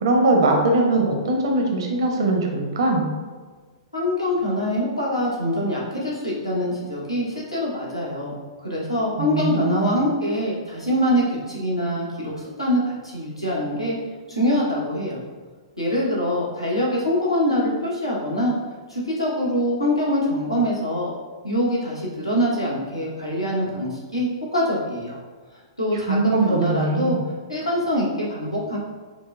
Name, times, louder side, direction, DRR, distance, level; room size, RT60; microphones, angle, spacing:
voice 1, 0.0-3.1 9.2-9.9 26.1-27.2, right 2 dB, 60° right, 1 dB, 0.6 m, -21 dB
voice 2, 3.9-8.3 8.6-12.3 12.6-13.9 14.3-15.2 15.8-18.5 18.9-21.1 21.4-25.2 25.8-27.2 27.5-28.8, equal, 90° left, -6 dB, 1.1 m, -24 dB
4.8 x 2.1 x 2.5 m, 1.4 s
figure-of-eight pair, 105°, 3 cm